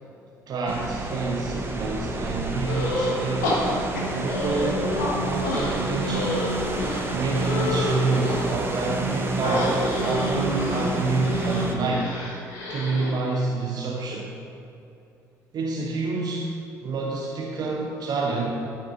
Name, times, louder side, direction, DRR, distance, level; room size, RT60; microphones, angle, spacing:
voice 1, 0.5-3.8 4.1-4.9 5.2-6.5 7.1-12.2 12.7-14.3 15.5-18.5, right 3 dB, 50° right, -1 dB, 1.0 m, -28 dB
sound 1, 0.7-11.7, right 2 dB, 25° right, 1.2 m, -29 dB
sound 2, 2.6-3.2 3.4-5.1 5.4-8.5 9.4-13.1, left 1 dB, 75° left, 1.4 m, -29 dB
12.0 x 6.5 x 3.7 m, 2.8 s
figure-of-eight pair, 50°, 9 cm